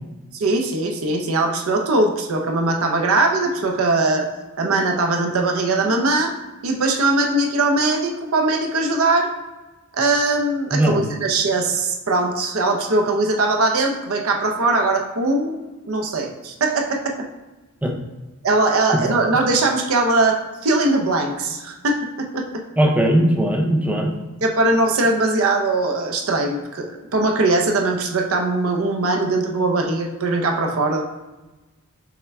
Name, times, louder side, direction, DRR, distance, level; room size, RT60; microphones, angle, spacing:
voice 1, 0.3-4.3 4.6-6.3 6.6-9.3 9.9-15.6 15.9-17.1 18.4-22.4 24.4-31.0, right 2 dB, 75° right, 3 dB, 0.6 m, -20 dB
voice 2, 10.7-11.1 17.8-17.9 18.9-19.1 22.8-24.1, right 1 dB, 5° right, 1 dB, 0.4 m, -19 dB
5.6 x 2.2 x 3.4 m, 1.1 s
head